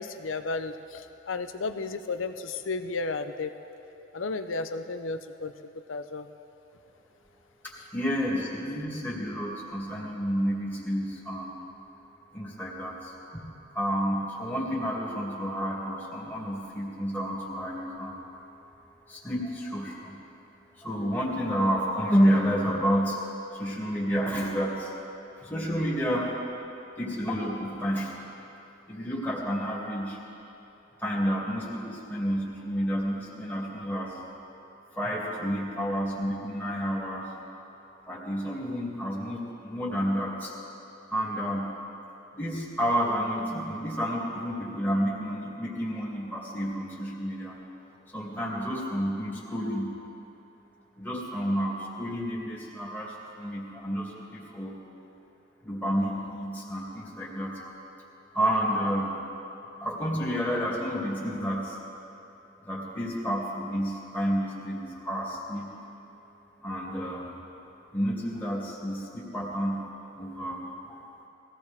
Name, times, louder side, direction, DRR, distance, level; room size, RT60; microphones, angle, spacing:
voice 1, 0.0-3.5 4.1-5.5 5.9-6.3, left 3 dB, 80° left, 9 dB, 0.7 m, -33 dB
voice 2, 7.9-11.6 12.3-13.4 13.7-18.1 19.1-20.2 20.8-23.2 23.5-24.9 25.4-26.3 27.0-28.1 28.9-30.2 31.0-34.2 35.0-37.3 38.1-40.5 41.1-41.7 42.3-47.6 48.1-49.9 51.0-54.8 55.6-57.8 58.3-59.1 59.8-61.8 62.6-65.7 66.6-67.3 67.9-69.8 70.2-71.0, equal, 10° left, -6 dB, 2.3 m, -30 dB
20.0 x 15.5 x 3.6 m, 2.9 s
head